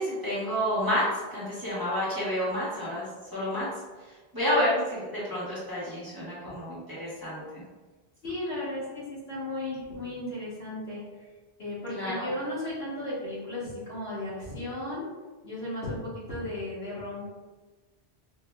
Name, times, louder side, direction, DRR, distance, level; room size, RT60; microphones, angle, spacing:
voice 1, 0.0-3.1 3.3-3.7 4.3-7.6 11.9-12.3, equal, 20° right, -10 dB, 1.4 m, -29 dB
voice 2, 8.2-11.2 11.6-15.1 15.4-17.2, left 1 dB, 70° left, -9 dB, 1.6 m, -35 dB
4.4 x 2.9 x 2.2 m, 1.3 s
omnidirectional pair, 1.0 m